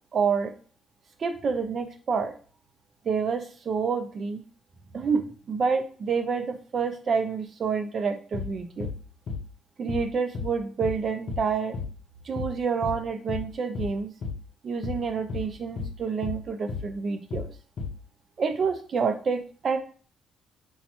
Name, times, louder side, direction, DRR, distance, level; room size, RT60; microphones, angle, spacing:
voice 1, 0.1-0.5 1.2-2.3 3.0-4.4 4.9-8.9 9.8-11.8 12.2-14.1 14.6-17.5 18.4-19.8, right 5 dB, 50° right, 8 dB, 0.6 m, -28 dB
sound 1, 8.3-8.5 8.8-9.0 9.3-9.5 9.9-10.1 10.3-10.5 10.8-11.0 11.3-11.5 11.7-11.9 12.4-12.6 12.8-13.0 13.3-13.5 13.7-14.0 14.2-14.4 14.8-15.0 15.3-15.5 15.8-16.0 16.2-16.4 16.7-16.9 17.3-17.5 17.8-18.0, left 4 dB, 60° left, 0.6 m, -33 dB
2.8 x 2.3 x 4.2 m, 0.40 s
cardioid pair, 90°, 0 cm